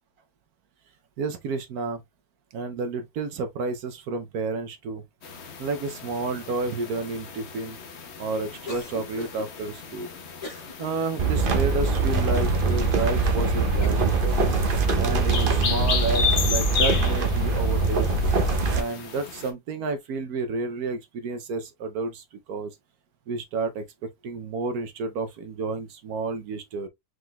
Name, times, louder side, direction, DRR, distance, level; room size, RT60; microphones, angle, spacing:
voice 1, 1.2-2.0 2.5-5.0 5.6-7.8 8.2-10.2 10.8-14.4 14.9-18.1 18.7-22.7 23.3-23.8 24.2-26.9, right 3 dB, 65° right, 0.9 m, -30 dB
sound 1, 5.2-19.5, left 6 dB, 55° left, 0.8 m, -34 dB
Cough, 8.7-9.5 10.4-10.7 11.2-11.3 11.8-12.5 13.1-13.2 13.8-14.1, left 2 dB, 20° left, 1.0 m, -39 dB
sound 2, 11.2-18.8, right 3 dB, 90° right, 0.4 m, -23 dB
4.8 x 3.8 x 2.2 m
omnidirectional pair, 2.2 m